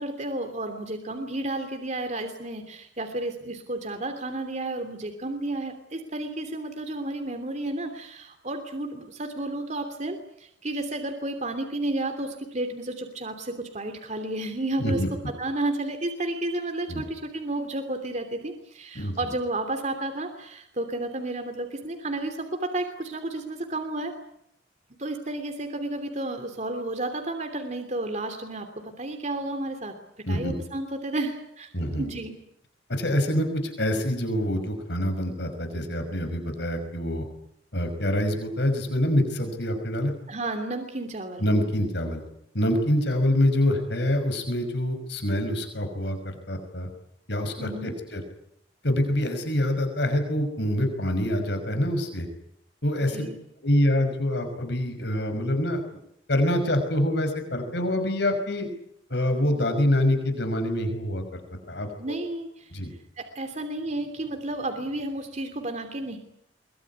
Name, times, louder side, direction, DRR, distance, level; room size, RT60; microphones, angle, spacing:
voice 1, 0.0-15.0 15.4-24.1 25.0-29.9 30.3-31.7 32.0-32.4 40.3-41.4 47.6-47.9 53.1-53.4 62.0-62.7 63.2-66.2, right 2 dB, 40° right, 6 dB, 3.0 m, -32 dB
voice 2, 14.8-15.1 16.9-17.0 19.0-19.3 30.3-30.5 31.7-32.0 32.9-37.2 37.7-40.1 41.4-42.2 42.5-46.9 47.3-48.2 48.8-52.3 52.8-53.3 53.6-55.8 56.3-58.7 59.1-61.9 62.7-62.9, left 1 dB, 65° left, 6 dB, 5.6 m, -25 dB
23.5 x 22.0 x 9.7 m, 0.75 s
head